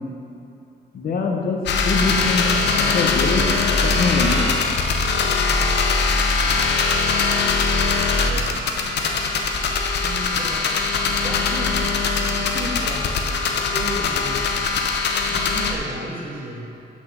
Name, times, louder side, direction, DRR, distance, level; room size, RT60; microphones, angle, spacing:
voice 1, 0.9-2.5 2.8-3.5 3.8-4.5, left 4 dB, 55° left, 1 dB, 1.0 m, -23 dB
sound 1, 1.7-15.7, left 4 dB, 85° left, 0.7 m, -21 dB
voice 2, 8.1-8.7 10.0-14.5 15.3-16.7, right 1 dB, 55° right, -5 dB, 1.9 m, -34 dB
6.2 x 6.1 x 6.1 m, 2.7 s
wide cardioid pair, 155°, 17 cm